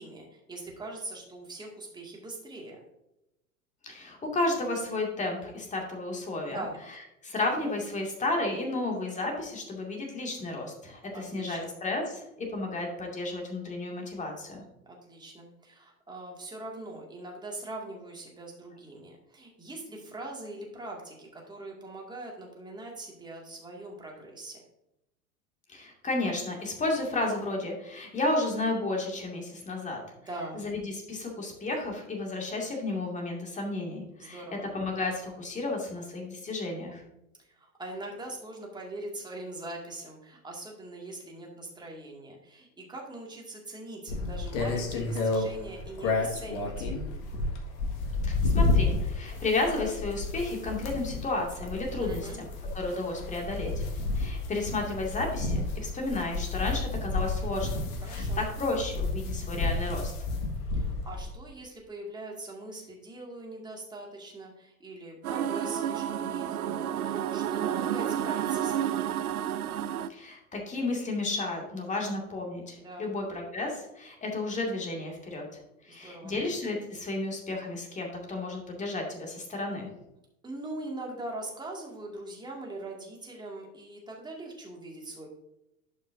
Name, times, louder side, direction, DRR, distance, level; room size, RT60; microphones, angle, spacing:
voice 1, 0.0-2.8 6.5-6.8 11.1-11.7 14.9-24.6 30.3-30.6 34.2-34.7 37.4-47.1 52.0-52.4 58.1-58.4 60.8-69.1 72.8-73.1 75.9-76.3 80.4-85.3, right 2 dB, 10° right, -1 dB, 2.1 m, -42 dB
voice 2, 3.8-6.6 7.2-14.6 25.7-30.0 30.5-37.0 48.2-52.5 52.7-53.7 54.1-60.1 70.1-75.5 75.8-79.9, left 2 dB, 15° left, 0 dB, 2.3 m, -32 dB
sound 1, 44.1-61.3, left 3 dB, 45° left, 1.8 m, -31 dB
sound 2, 65.2-70.1, right 10 dB, 75° right, 0.5 m, -30 dB
11.5 x 5.7 x 2.7 m, 0.86 s
figure-of-eight pair, 95°, 44 cm